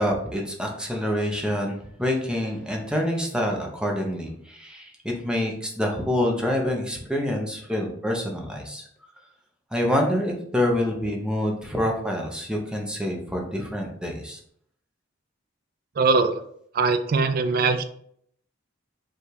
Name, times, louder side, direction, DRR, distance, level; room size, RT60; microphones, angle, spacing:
voice 1, 0.0-8.8 9.7-14.4, left 1 dB, 5° right, 0 dB, 0.7 m, -26 dB
voice 2, 16.0-16.4 16.7-17.8, right 4 dB, 50° right, 9 dB, 0.4 m, -21 dB
5.3 x 2.4 x 3.2 m, 0.67 s
head